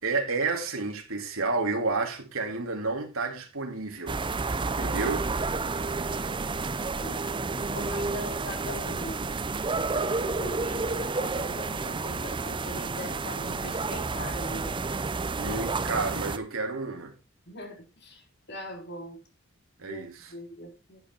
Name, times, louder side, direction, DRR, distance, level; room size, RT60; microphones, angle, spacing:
voice 1, 0.0-4.2 4.6-5.3 15.4-17.1 19.8-20.3, right 3 dB, 75° right, 2.6 m, -30 dB
sound 1, 4.1-16.4, right 3 dB, 25° right, 0.5 m, -30 dB
voice 2, 7.0-9.3 9.9-14.8 15.4-15.6 17.5-19.2 19.8-21.0, left 1 dB, 50° left, 3.6 m, -41 dB
10.5 x 8.3 x 4.5 m
head